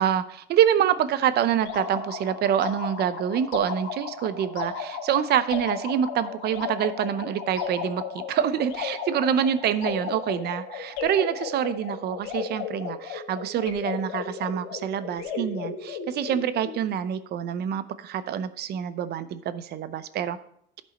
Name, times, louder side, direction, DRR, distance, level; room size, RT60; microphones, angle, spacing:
voice 1, 0.0-20.4, right 9 dB, 55° right, 13 dB, 0.7 m, -26 dB
sound 1, 1.6-16.8, left 6 dB, 90° left, 2.1 m, -35 dB
12.5 x 5.4 x 4.1 m, 0.66 s
cardioid pair, 120°, 20 cm